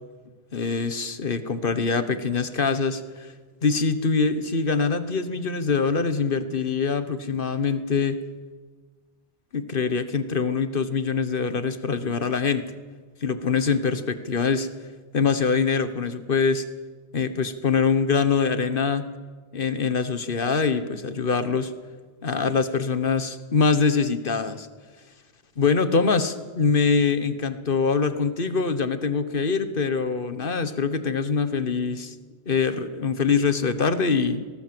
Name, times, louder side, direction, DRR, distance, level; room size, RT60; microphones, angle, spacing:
voice 1, 0.5-3.3 3.6-8.2 9.5-12.7 13.2-14.7 15.1-16.6 17.1-19.1 19.5-21.7 22.2-24.7 25.6-32.1 32.5-34.5, left 5 dB, 55° left, 12 dB, 1.4 m, -24 dB
19.5 x 18.5 x 7.7 m, 1.4 s
omnidirectional pair, 1.1 m